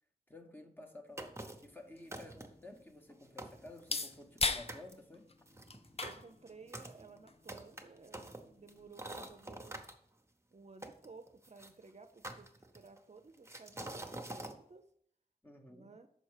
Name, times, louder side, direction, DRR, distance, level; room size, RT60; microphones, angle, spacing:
voice 1, 0.3-1.4 1.6-5.3 15.4-16.0, left 1 dB, 10° left, 3 dB, 1.0 m, -53 dB
sound 1, 1.2-1.7 2.1-2.7 3.1-3.2 3.4-4.4 4.7-4.9 5.5-9.9 10.8-11.7 12.2-13.0 13.5-14.6, right 1 dB, 15° right, 0.8 m, -46 dB
sound 2, 1.7-9.4, left 3 dB, 40° left, 0.5 m, -43 dB
voice 2, 6.0-9.9 10.5-14.8 15.7-16.1, right 4 dB, 45° right, 7 dB, 0.5 m, -56 dB
6.4 x 4.2 x 4.8 m, 0.64 s
wide cardioid pair, 55°, 17 cm